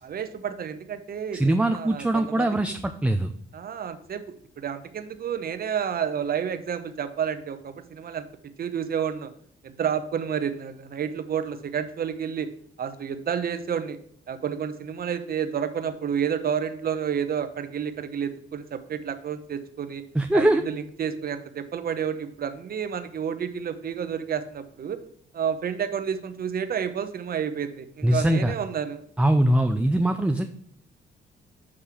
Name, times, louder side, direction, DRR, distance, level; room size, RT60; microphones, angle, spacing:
voice 1, 0.0-2.8 3.5-8.3 8.6-9.3 9.6-12.5 12.8-14.0 14.3-20.0 20.3-25.0 25.3-29.0, right 8 dB, 50° right, 10 dB, 0.8 m, -30 dB
voice 2, 1.3-3.3 20.1-20.6 28.0-28.5 29.2-30.5, right 1 dB, 5° right, 6 dB, 0.4 m, -22 dB
7.2 x 3.3 x 5.9 m, 0.65 s
cardioid pair, 90°, 20 cm